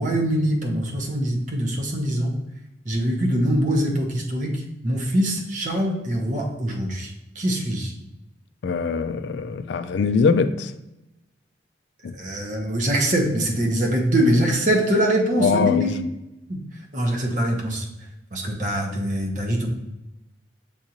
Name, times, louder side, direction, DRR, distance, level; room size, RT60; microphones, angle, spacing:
voice 1, 0.0-2.3 2.9-7.9 12.1-16.0 16.5-16.6 16.9-17.9 18.3-19.7, right 1 dB, 40° right, 0 dB, 0.9 m, -23 dB
voice 2, 8.6-10.7 12.0-12.1 15.4-16.0, left 5 dB, 65° left, 11 dB, 0.3 m, -22 dB
7.1 x 2.5 x 2.9 m, 0.93 s
head